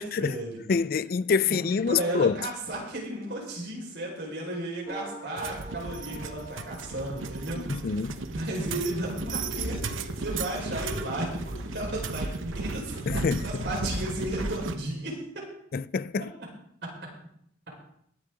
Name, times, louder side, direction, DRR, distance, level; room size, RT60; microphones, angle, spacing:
voice 1, 0.0-0.6 1.5-7.9 8.3-15.2, right 1 dB, 55° right, 5.1 m, -34 dB
voice 2, 0.7-2.5 7.5-8.2 13.1-13.7 15.7-16.3, left 5 dB, 45° left, 0.4 m, -26 dB
sound 1, 4.8-8.2, right 1 dB, 30° right, 6.2 m, -45 dB
sound 2, 5.4-14.8, right 3 dB, 80° right, 0.9 m, -35 dB
sound 3, 8.2-13.0, left 1 dB, 65° left, 1.9 m, -42 dB
21.5 x 8.1 x 3.9 m
head